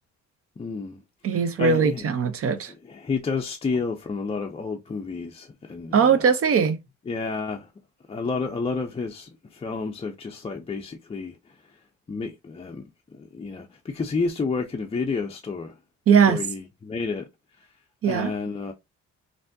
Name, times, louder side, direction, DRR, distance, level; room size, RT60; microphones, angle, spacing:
voice 1, 0.6-1.0 1.3-2.1 2.8-6.2 7.1-7.7 8.1-11.8 12.1-12.8 13.1-15.7 16.2-17.2 17.6-17.7 18.0-18.7, left 4 dB, 20° left, 0.4 m, -30 dB
voice 2, 1.2-2.7 5.9-6.8 16.1-16.4 18.0-18.3, right 6 dB, 50° right, 0.6 m, -20 dB
3.3 x 2.6 x 2.6 m
cardioid pair, 90°, 30 cm